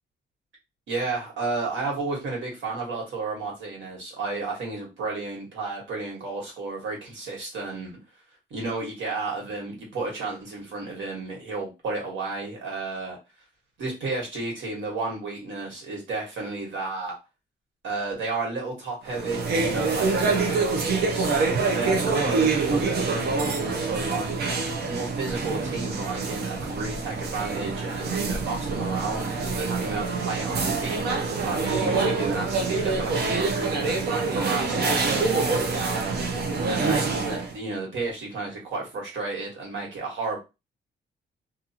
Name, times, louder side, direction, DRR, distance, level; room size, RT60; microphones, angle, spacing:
voice 1, 0.9-8.0 8.5-13.2 13.8-17.1 17.8-21.3 21.7-24.4 24.9-31.0 31.4-36.2 36.7-40.4, right 3 dB, 80° right, -1 dB, 1.5 m, -32 dB
sound 1, 19.1-37.5, right 4 dB, 55° right, 0.7 m, -26 dB
2.6 x 2.5 x 2.8 m, 0.25 s
wide cardioid pair, 170°, 19 cm